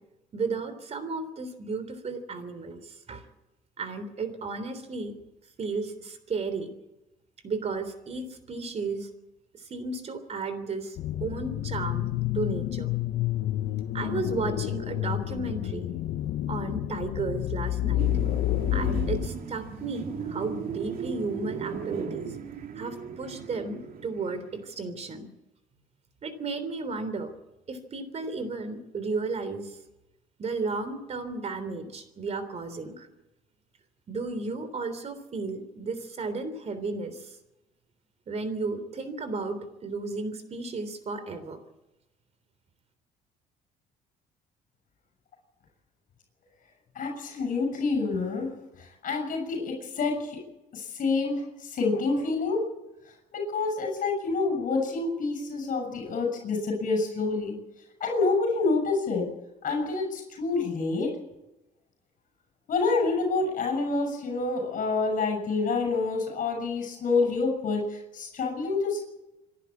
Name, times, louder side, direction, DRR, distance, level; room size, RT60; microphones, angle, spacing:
voice 1, 0.3-2.8 3.1-3.2 3.8-5.2 5.6-6.7 7.4-9.1 9.7-12.9 13.9-15.9 16.5-18.1 18.7-22.3 22.8-25.3 26.2-27.3 27.7-29.7 30.4-33.1 34.1-37.2 38.3-41.6, right 3 dB, 40° right, 11 dB, 3.5 m, -33 dB
sound 1, 11.0-19.3, left 14 dB, 70° left, 0.9 m, -29 dB
sound 2, 18.0-24.6, right 6 dB, 55° right, 2.9 m, -36 dB
voice 2, 47.0-48.5 48.8-50.4 50.7-52.7 53.3-57.6 58.0-59.3 59.6-61.2 62.7-69.0, left 3 dB, 55° left, 2 dB, 6.9 m, -27 dB
26.0 x 11.5 x 8.7 m, 0.97 s
cardioid pair, 110°, 17 cm